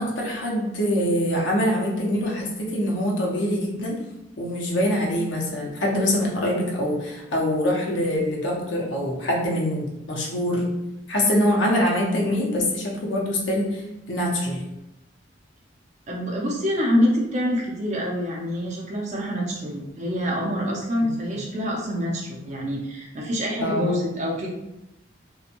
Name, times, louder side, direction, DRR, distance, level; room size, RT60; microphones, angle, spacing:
voice 1, 0.0-4.0 4.4-10.7 11.1-13.8 14.1-14.6 23.6-23.9, left 1 dB, 85° left, -2 dB, 0.7 m, -24 dB
voice 2, 16.1-24.5, equal, 40° right, -3 dB, 0.5 m, -26 dB
2.9 x 2.2 x 2.5 m, 0.91 s
head